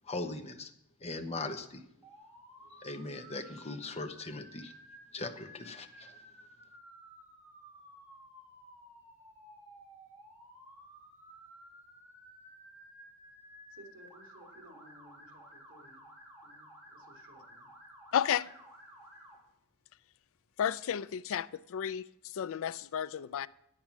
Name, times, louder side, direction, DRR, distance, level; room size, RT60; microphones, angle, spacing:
voice 1, 0.1-0.7 1.0-1.8 2.8-4.7 5.1-6.2, left 2 dB, 30° left, 0.9 m, -39 dB
Motor vehicle (road) / Siren, 2.0-19.3, equal, 10° right, 2.5 m, -55 dB
voice 2, 13.7-16.0 16.4-17.7, right 1 dB, 60° right, 3.1 m, -58 dB
voice 3, 18.1-18.5 20.6-23.5, left 9 dB, 65° left, 0.4 m, -32 dB
9.9 x 8.9 x 6.0 m
head